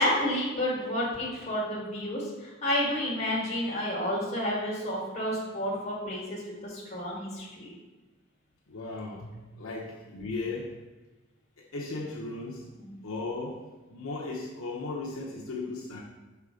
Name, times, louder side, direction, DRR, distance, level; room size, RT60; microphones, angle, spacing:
voice 1, 0.0-7.7 12.8-12.9, left 1 dB, 30° left, -5 dB, 1.7 m, -30 dB
voice 2, 8.7-10.7 11.6-12.7 13.0-13.6 13.9-16.0, left 3 dB, 70° left, -4 dB, 0.8 m, -36 dB
5.8 x 4.7 x 3.7 m, 1.2 s
head